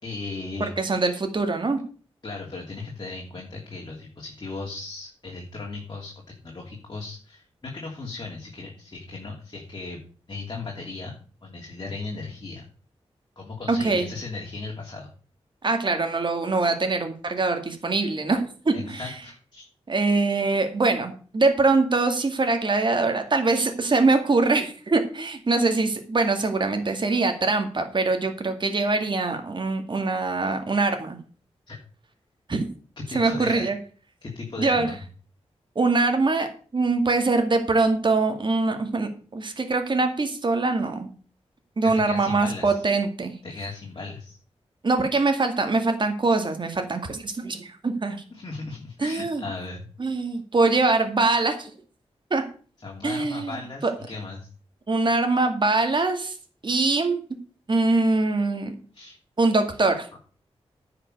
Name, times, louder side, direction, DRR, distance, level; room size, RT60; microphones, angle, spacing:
voice 1, 0.0-0.7 2.2-10.0 10.3-12.7 13.4-15.1 18.7-19.6 31.7-31.8 33.0-33.7 34.2-35.0 42.0-42.8 43.4-44.4 48.3-49.9 52.8-54.5 58.9-59.2, left 3 dB, 40° left, -1 dB, 2.9 m, -36 dB
voice 2, 0.6-1.8 13.7-14.1 15.6-19.1 19.9-31.2 32.5-32.6 33.1-33.8 34.6-34.9 35.8-41.1 41.8-43.3 44.8-48.2 49.0-49.4 50.0-51.7 52.3-52.4 53.0-53.5 53.8-53.9 54.9-56.3 56.6-57.2 57.7-58.8 59.4-60.1, right 3 dB, 45° right, 6 dB, 2.3 m, -23 dB
10.0 x 5.9 x 7.8 m, 0.40 s
cardioid pair, 75°, 11 cm